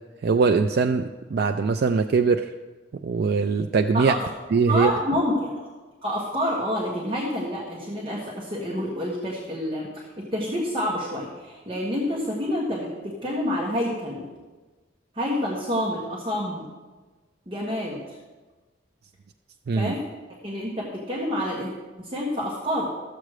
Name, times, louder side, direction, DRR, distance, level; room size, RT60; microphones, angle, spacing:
voice 1, 0.2-2.5 3.0-4.1 4.5-4.9 19.7-19.9, right 4 dB, 50° right, 6 dB, 0.4 m, -21 dB
voice 2, 3.9-4.3 4.7-5.7 6.0-14.3 15.1-16.7 17.5-18.2 19.7-20.0 20.4-21.7 22.0-22.9, equal, 25° right, -4 dB, 1.4 m, -28 dB
13.0 x 7.5 x 4.9 m, 1.3 s
head